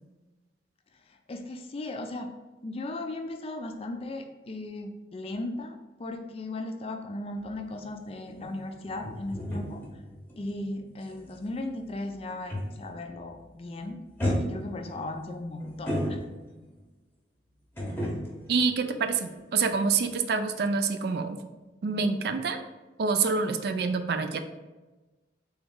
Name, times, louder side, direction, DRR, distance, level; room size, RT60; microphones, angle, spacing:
voice 1, 1.1-2.3 2.6-9.8 10.4-14.0 14.4-16.2, left 2 dB, 30° left, 5 dB, 0.3 m, -37 dB
sound 1, 7.4-13.1 13.3-13.7 14.2-16.7 17.8-19.7 20.0-20.1, equal, 10° left, 0.8 m, -35 dB
voice 2, 18.5-21.4 21.8-22.6 23.0-24.4, right 4 dB, 60° right, 8 dB, 0.3 m, -27 dB
3.5 x 3.0 x 3.6 m, 1.2 s
head